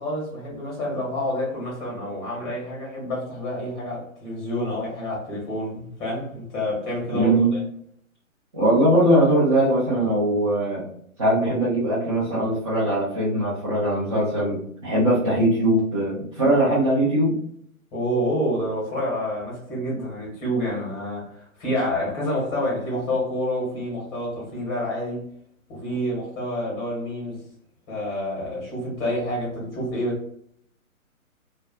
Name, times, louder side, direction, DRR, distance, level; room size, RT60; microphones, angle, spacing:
voice 1, 0.0-7.6 17.9-25.2 25.7-27.4 27.9-30.2, equal, 20° left, 0.9 m, -28 dB
voice 2, 7.1-7.5 8.5-10.8 11.2-17.4, right 1 dB, 20° right, 0.5 m, -21 dB
2.4 x 2.1 x 2.4 m
figure-of-eight pair, 135°, 42 cm